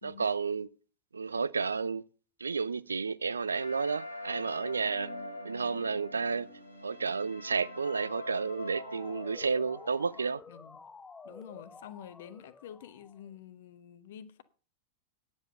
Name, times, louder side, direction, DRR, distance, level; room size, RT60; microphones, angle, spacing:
voice 1, 0.0-0.7 1.1-2.0 2.4-5.1 5.4-6.5 6.8-10.4, right 5 dB, 75° right, 0.4 m, -31 dB
sound 1, 3.5-10.3, left 2 dB, 80° left, 2.0 m, -43 dB
Motor vehicle (road) / Siren, 7.5-13.3, left 4 dB, 15° left, 0.5 m, -52 dB
voice 2, 10.5-10.8 11.2-14.4, left 9 dB, 55° left, 1.1 m, -48 dB
9.8 x 8.0 x 6.8 m
figure-of-eight pair, 90°, 0 cm